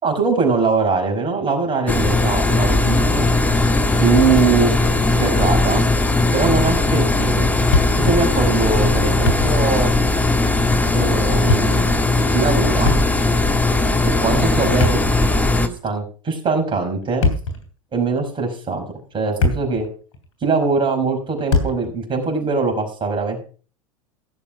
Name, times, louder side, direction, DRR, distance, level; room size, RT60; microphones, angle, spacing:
voice 1, 0.0-3.3 4.0-4.8 5.2-5.8 6.3-7.5 8.0-9.9 10.9-11.8 12.3-12.9 14.1-15.0 15.8-17.3 17.9-18.8 19.1-19.9 20.4-23.4, right 4 dB, 30° right, 3 dB, 5.4 m, -21 dB
sound 1, 1.9-15.7, left 2 dB, 10° left, 1.7 m, -18 dB
Thump thud, 7.7-8.2 8.5-8.6 9.1-9.8 10.1-10.2 11.2-11.9 12.8-13.4 14.6-15.6 17.0-17.7 18.4-18.5 19.1-19.9 20.1-20.3 21.5-21.9, left 2 dB, 70° left, 3.2 m, -22 dB
16.5 x 7.1 x 5.0 m, 0.39 s
hypercardioid pair, 85°, 17 cm